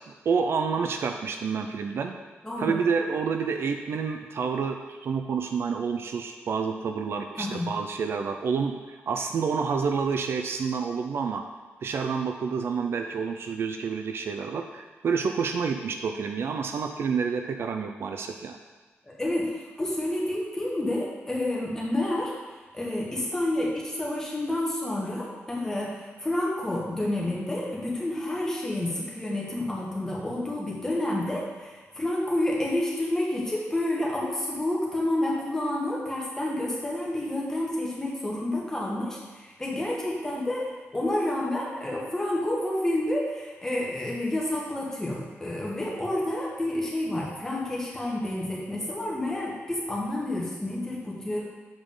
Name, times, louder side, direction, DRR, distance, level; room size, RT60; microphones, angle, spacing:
voice 1, 0.3-2.1 2.6-11.4 11.8-18.6, right 5 dB, 60° right, 5 dB, 0.4 m, -28 dB
voice 2, 2.4-2.7 7.4-7.7 19.1-22.3 22.7-51.4, left 1 dB, 10° left, -4 dB, 1.4 m, -29 dB
7.3 x 4.9 x 3.8 m, 1.3 s
wide cardioid pair, 160°, 5 cm